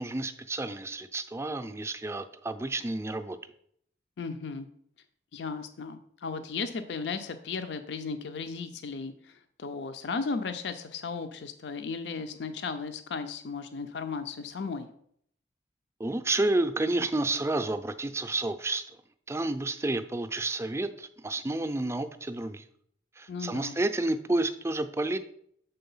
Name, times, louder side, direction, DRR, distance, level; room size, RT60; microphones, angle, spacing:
voice 1, 0.0-3.4 16.0-18.9 19.3-22.6 23.2-25.2, right 2 dB, 15° right, 9 dB, 0.4 m, -30 dB
voice 2, 4.2-4.7 5.3-14.9 23.3-23.7, left 4 dB, 75° left, 9 dB, 0.5 m, -35 dB
6.8 x 3.8 x 5.5 m, 0.67 s
head